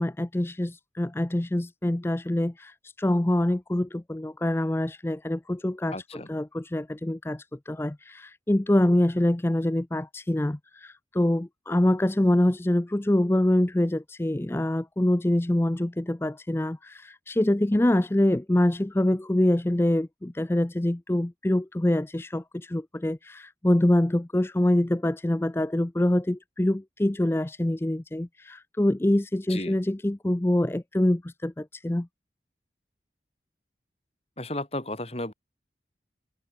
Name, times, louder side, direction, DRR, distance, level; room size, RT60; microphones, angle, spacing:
voice 1, 0.0-5.9 6.3-32.1, left 1 dB, 15° left, 0.4 m, -25 dB
voice 2, 5.9-6.3 17.7-17.8 29.5-29.8 34.4-35.3, left 1 dB, 35° left, 3.5 m, -34 dB
head